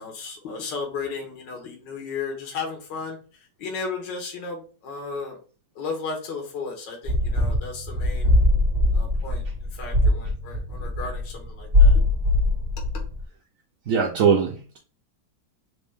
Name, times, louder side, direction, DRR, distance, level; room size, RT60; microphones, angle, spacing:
voice 1, 0.0-3.2 3.6-5.4 5.8-8.3 8.9-9.4 9.8-12.0, left 4 dB, 80° left, 1 dB, 1.7 m, -34 dB
sound 1, 7.1-11.5 11.7-13.2, left 2 dB, 20° right, 1.7 m, -21 dB
voice 2, 13.9-14.8, right 6 dB, 60° right, 0 dB, 1.0 m, -21 dB
4.2 x 3.1 x 3.5 m, 0.38 s
omnidirectional pair, 1.9 m